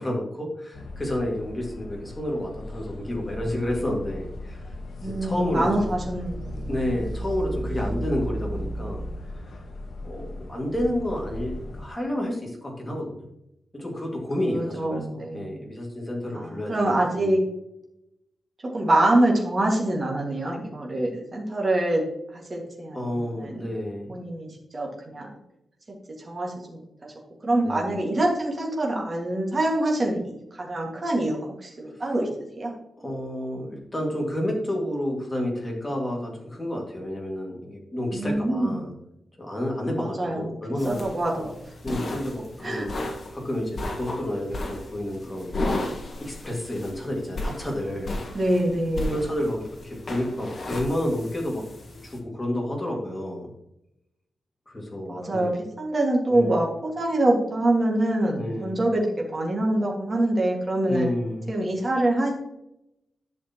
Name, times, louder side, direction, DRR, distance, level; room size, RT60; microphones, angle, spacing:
voice 1, 0.0-4.6 5.0-5.7 6.7-9.1 10.0-13.2 13.7-17.4 22.9-24.2 27.6-28.0 33.0-38.9 39.4-41.0 41.8-42.9 43.3-45.8 46.2-48.2 49.1-51.6 52.0-53.5 54.7-55.4 56.3-56.6 58.3-58.8 60.9-61.5, left 1 dB, 15° left, -1 dB, 2.0 m, -30 dB
sound 1, 0.7-11.9, equal, 65° left, 1.2 m, -36 dB
voice 2, 5.0-6.7 14.4-15.5 16.3-17.4 18.7-22.0 22.3-23.7 24.1-25.3 26.2-27.1 27.4-32.3 32.6-32.7 38.1-38.8 40.0-40.6 40.8-41.5 42.6-42.9 48.3-49.2 55.1-55.5 55.8-61.1 61.5-62.3, right 1 dB, 25° right, -1 dB, 1.8 m, -25 dB
sound 2, 40.8-52.2, left 2 dB, 40° left, 1.4 m, -34 dB
11.0 x 6.5 x 2.9 m, 0.84 s
wide cardioid pair, 175°, 0 cm